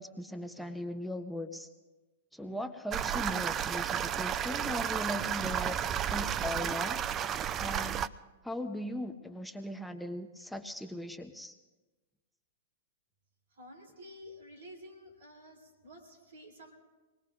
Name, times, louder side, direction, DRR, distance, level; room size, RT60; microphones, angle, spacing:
voice 1, 0.0-1.7 2.3-7.0 7.6-8.0 8.4-11.6, left 1 dB, ahead, 6 dB, 0.8 m, -39 dB
sound 1, 2.9-8.1, right 9 dB, 30° right, 0.4 m, -32 dB
voice 2, 13.5-16.7, equal, 75° right, 3 dB, 4.2 m, -51 dB
25.5 x 19.5 x 2.6 m, 1.2 s
hypercardioid pair, 110°, 0 cm